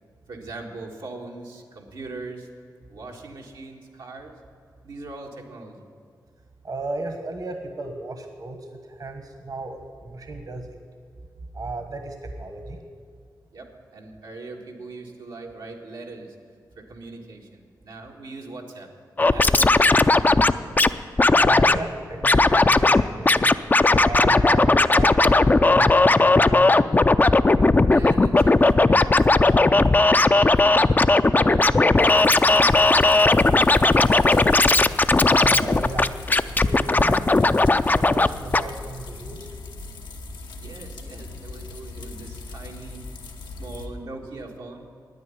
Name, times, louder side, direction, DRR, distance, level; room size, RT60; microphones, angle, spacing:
voice 1, 0.3-2.5 2.9-4.3 4.8-5.9 13.5-16.3 16.7-18.9 19.2-20.3 27.9-29.5 30.4-34.0 40.5-43.0 43.4-44.9, right 2 dB, 85° right, -1 dB, 1.6 m, -40 dB
voice 2, 6.6-10.8 11.5-12.8 21.3-23.5 24.0-26.7 35.4-36.1 36.6-37.4 37.9-39.5, right 3 dB, 55° right, 5 dB, 1.3 m, -35 dB
Scratching (performance technique), 19.2-20.9 21.2-21.8 22.2-23.0 23.3-38.3 38.5-38.6, left 2 dB, 25° left, 0.4 m, -17 dB
sound 1, 32.0-43.9, left 3 dB, 85° left, 1.1 m, -39 dB
9.5 x 9.4 x 9.6 m, 2.3 s
cardioid pair, 55°, 8 cm